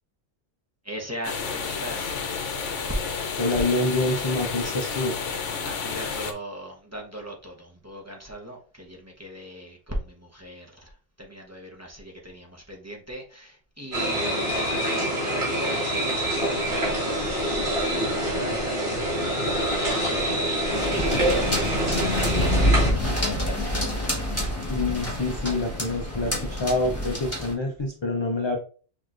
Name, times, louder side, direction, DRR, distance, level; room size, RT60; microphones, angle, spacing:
voice 1, 0.8-2.1 5.6-10.9 11.2-19.6 19.8-23.9, equal, 15° right, -1 dB, 0.8 m, -39 dB
sound 1, 1.2-6.3, left 5 dB, 90° left, 1.1 m, -31 dB
voice 2, 3.4-5.2 24.7-28.6, left 2 dB, 35° left, 2 dB, 0.4 m, -26 dB
sound 2, 13.9-22.9, equal, 45° right, 2.0 m, -25 dB
sound 3, 20.7-27.5, equal, 15° left, 1.3 m, -27 dB
6.4 x 3.0 x 2.5 m, 0.40 s
omnidirectional pair, 1.2 m